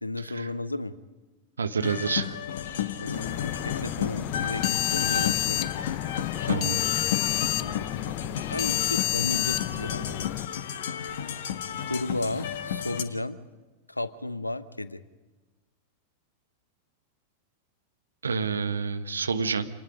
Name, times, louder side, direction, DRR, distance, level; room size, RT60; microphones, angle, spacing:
voice 1, 0.0-0.9 3.0-5.7 7.3-10.5 11.9-13.4 13.9-15.0, left 2 dB, 85° left, 15 dB, 0.9 m, -34 dB
voice 2, 1.6-2.3 6.4-6.8 18.2-19.7, right 5 dB, 75° right, 9 dB, 1.3 m, -28 dB
sound 1, 1.8-13.0, left 9 dB, 55° left, 1.4 m, -32 dB
sound 2, 3.1-10.5, left 16 dB, 40° left, 0.5 m, -30 dB
27.5 x 19.5 x 5.2 m, 1.3 s
figure-of-eight pair, 90°, 0 cm